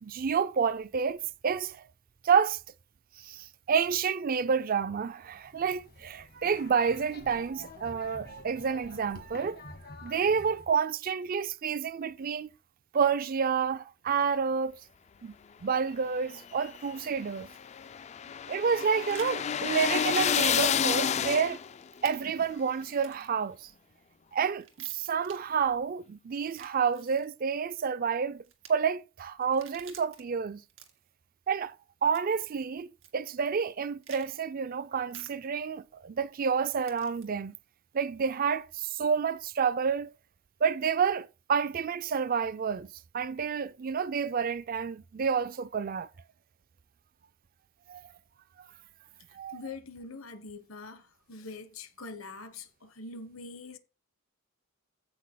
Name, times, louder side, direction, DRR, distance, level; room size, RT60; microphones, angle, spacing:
voice 1, 0.0-1.8 2.2-2.6 3.2-9.6 10.0-12.5 12.9-14.8 15.2-15.3 15.6-17.5 18.5-21.6 22.0-23.7 24.3-28.4 28.7-30.6 31.5-31.7 32.0-37.5 37.9-40.1 40.6-42.9 43.1-46.1 47.9-48.1 48.6-48.7 49.3-49.6, right 6 dB, 45° right, 0.4 m, -29 dB
sound 1, 5.3-10.7, left 2 dB, 50° left, 1.7 m, -49 dB
sound 2, 16.4-21.8, left 8 dB, 35° left, 0.3 m, -29 dB
sound 3, 18.5-19.3 20.4-20.6 20.8-20.9 22.0-22.2 22.9-23.4 24.6-25.4 26.3-27.3 28.4-28.7 29.4-30.2 30.7-31.1 32.1-32.5 33.0-33.1 34.0-34.3 35.1-35.3 36.8-37.2, right 8 dB, 70° right, 2.1 m, -51 dB
voice 2, 49.5-53.8, left 3 dB, 75° left, 1.3 m, -44 dB
15.5 x 6.2 x 2.3 m
head